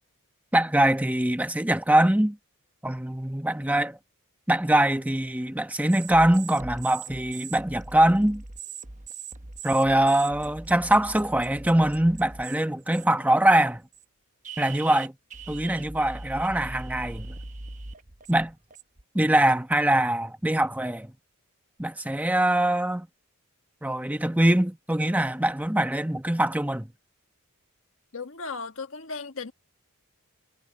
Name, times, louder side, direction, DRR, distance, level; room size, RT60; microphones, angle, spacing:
voice 1, 0.5-2.4 2.8-4.0 4.5-8.4 9.6-13.8 14.6-15.1 15.5-17.3 18.3-18.5 19.1-21.1 21.8-23.1 23.8-26.9, right 1 dB, 5° right, 1.1 m, -23 dB
sound 1, 5.9-12.6 12.9-13.3 13.9-14.0 14.4-19.0, right 4 dB, 35° right, 1.1 m, -41 dB
voice 2, 28.1-29.5, left 4 dB, 60° left, 1.6 m, -36 dB
head